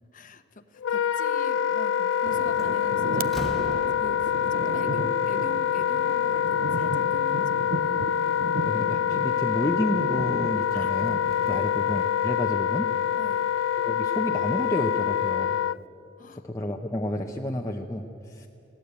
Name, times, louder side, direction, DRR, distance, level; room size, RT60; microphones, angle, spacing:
voice 1, 0.1-8.2 10.7-10.9 11.5-11.7 13.2-13.5 16.2-16.5, left 2 dB, 45° left, 11 dB, 1.0 m, -44 dB
Wind instrument woodwind instrument, 0.8-15.8, left 9 dB, 75° left, 0.4 m, -25 dB
Slam, 1.9-2.2 2.6-4.5, equal, ahead, 1.7 m, -38 dB
sound 1, 2.2-12.1, right 4 dB, 50° right, 0.5 m, -36 dB
voice 2, 8.7-11.2 11.5-12.9 13.8-15.6 16.4-18.5, left 1 dB, 15° left, 1 dB, 0.8 m, -30 dB
21.5 x 17.0 x 8.2 m, 2.6 s
head